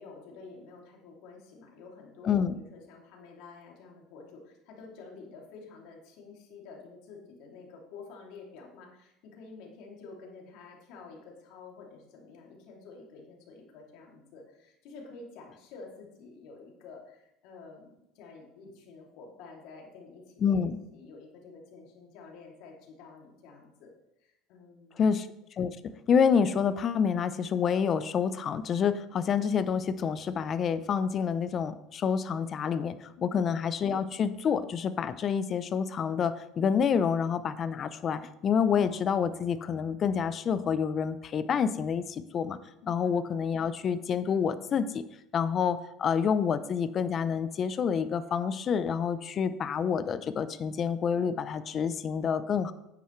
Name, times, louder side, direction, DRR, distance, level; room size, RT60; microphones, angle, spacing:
voice 1, 0.0-23.9 24.2-25.1 33.2-33.4 42.8-42.9, left 4 dB, 70° left, -1 dB, 2.8 m, -49 dB
voice 2, 2.2-2.6 20.4-20.8 25.0-25.3 25.6-25.8 26.1-42.6 42.9-45.0 45.3-52.7, left 7 dB, 40° left, 13 dB, 0.7 m, -28 dB
9.9 x 9.1 x 3.3 m, 0.85 s
supercardioid pair, 95°, 0 cm